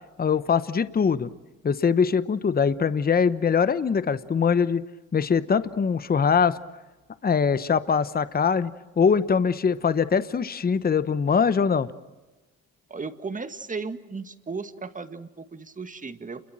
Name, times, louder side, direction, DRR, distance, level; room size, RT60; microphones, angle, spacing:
voice 1, 0.2-1.3 1.6-4.8 5.1-6.6 7.2-8.7 9.0-11.9, left 6 dB, 30° left, 14 dB, 1.0 m, -22 dB
voice 2, 12.9-16.4, right 4 dB, 25° right, 9 dB, 1.8 m, -35 dB
29.0 x 22.5 x 7.6 m, 1.1 s
cardioid pair, 90°, 30 cm